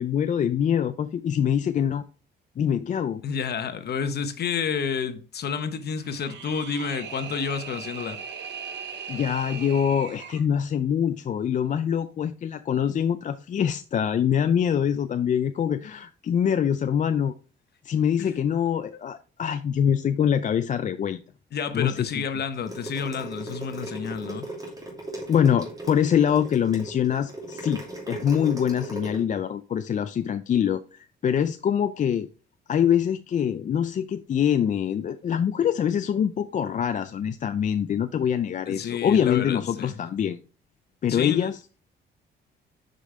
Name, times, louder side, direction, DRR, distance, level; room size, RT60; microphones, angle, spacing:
voice 1, 0.0-2.0 2.6-3.2 9.1-17.3 17.8-21.2 21.7-22.2 25.3-32.3 32.7-40.4 41.0-41.6, left 8 dB, 40° left, 0.4 m, -24 dB
voice 2, 3.2-8.2 18.2-18.3 18.9-19.0 21.5-24.5 38.7-39.9 41.1-41.5, left 6 dB, 55° left, 0.9 m, -30 dB
sound 1, 6.0-10.5, right 6 dB, 60° right, 1.1 m, -38 dB
sound 2, 22.5-29.2, right 1 dB, 20° right, 2.7 m, -37 dB
6.3 x 5.1 x 3.2 m
cardioid pair, 90°, 20 cm